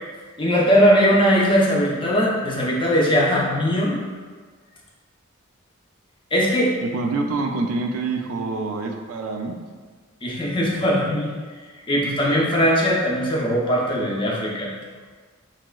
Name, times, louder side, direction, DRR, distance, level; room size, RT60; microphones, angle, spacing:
voice 1, 0.4-4.1 6.3-6.7 10.2-11.3 11.9-14.7, equal, 25° left, -4 dB, 0.5 m, -20 dB
voice 2, 6.8-9.6, right 3 dB, 75° right, 4 dB, 0.3 m, -26 dB
3.2 x 2.9 x 2.2 m, 1.5 s
head